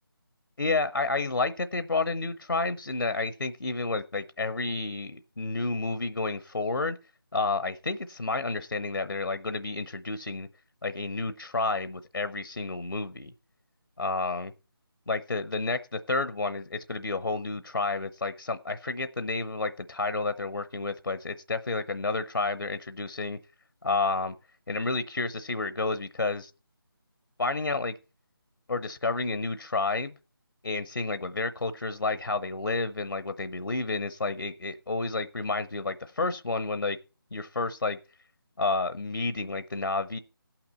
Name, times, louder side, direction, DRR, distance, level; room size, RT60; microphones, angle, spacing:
voice 1, 0.6-7.0 7.3-10.5 10.8-13.3 14.0-14.5 15.1-23.4 23.8-24.3 24.7-26.5 27.4-27.9 28.7-30.1 30.6-37.0 37.3-38.0 38.6-40.2, left 3 dB, 70° left, 12 dB, 0.8 m, -30 dB
17.5 x 6.0 x 4.2 m, 0.32 s
figure-of-eight pair, 160°, 12 cm